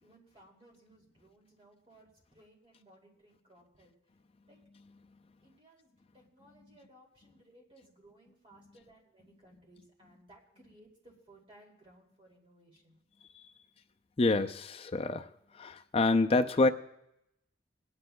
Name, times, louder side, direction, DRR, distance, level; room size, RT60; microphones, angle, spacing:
voice 1, 0.0-3.9 4.5-4.6 5.4-5.9 6.1-13.0, right 1 dB, 30° right, -1 dB, 2.5 m, -61 dB
voice 2, 14.2-15.3 15.5-16.7, left 3 dB, 30° left, 7 dB, 0.4 m, -27 dB
25.0 x 9.8 x 2.2 m, 0.82 s
head